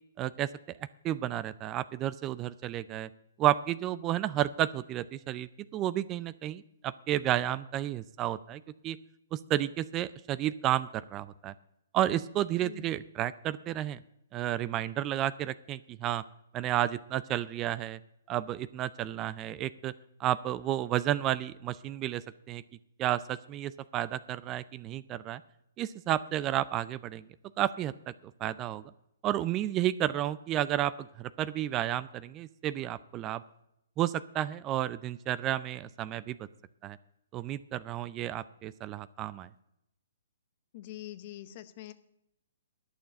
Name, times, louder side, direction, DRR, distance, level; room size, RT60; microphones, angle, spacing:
voice 1, 0.2-0.5 1.0-3.1 3.4-9.0 9.3-11.5 11.9-14.0 14.3-16.2 16.5-18.0 18.3-19.9 20.2-22.2 22.5-22.6 23.0-25.4 25.8-27.2 27.6-27.9 28.4-28.8 29.2-30.9 31.2-33.4 34.0-36.4 36.8-37.0 37.3-39.5, right 12 dB, 25° right, 17 dB, 0.4 m, -31 dB
voice 2, 40.7-41.9, left 14 dB, 45° left, 13 dB, 0.9 m, -44 dB
11.5 x 6.9 x 8.6 m, 0.81 s
hypercardioid pair, 135°, 0 cm